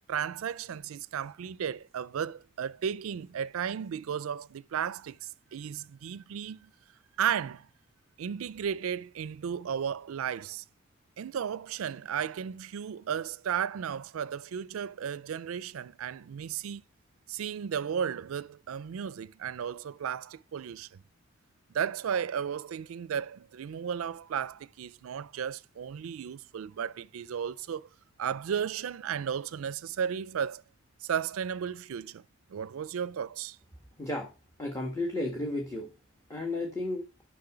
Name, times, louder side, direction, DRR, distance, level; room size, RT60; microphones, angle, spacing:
voice 1, 0.1-6.7 7.2-7.7 8.2-10.6 11.2-16.8 17.3-21.0 21.7-27.9 28.2-30.6 31.0-32.2 32.5-33.6, right 8 dB, 85° right, 0.4 m, -34 dB
voice 2, 34.6-35.9 36.3-37.0, left 2 dB, 15° left, 1.6 m, -33 dB
10.5 x 6.3 x 4.9 m
head